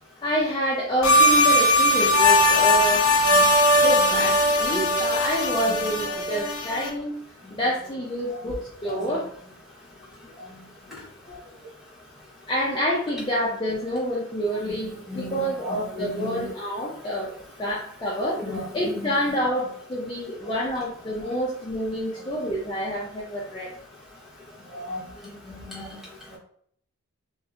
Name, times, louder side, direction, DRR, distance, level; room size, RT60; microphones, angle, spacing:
voice 1, 0.2-3.1 3.8-7.2 7.5-9.2 12.5-17.3 17.6-23.7, equal, 20° left, -5 dB, 0.4 m, -28 dB
sound 1, 1.0-6.9, left 1 dB, 75° left, 0.5 m, -19 dB
voice 2, 15.1-16.4 18.4-19.1 19.4-19.7 20.5-20.6 24.7-25.0 25.5-25.9, left 2 dB, ahead, -6 dB, 0.9 m, -35 dB
3.1 x 2.7 x 2.5 m, 0.64 s
head